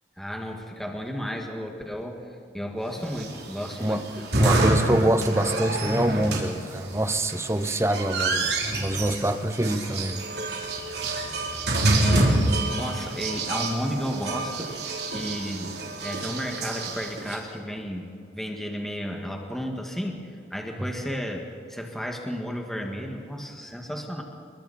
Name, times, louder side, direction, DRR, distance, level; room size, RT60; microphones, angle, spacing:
voice 1, 0.2-2.2 2.5-4.0 4.5-4.6 11.9-14.8 15.1-15.8 16.0-24.2, equal, ahead, 1 dB, 2.0 m, -33 dB
sound 1, 3.1-17.4, right 2 dB, 60° right, 3.5 m, -27 dB
voice 2, 4.4-10.2, right 1 dB, 15° right, 9 dB, 1.0 m, -25 dB
29.0 x 22.0 x 4.4 m, 2.5 s
head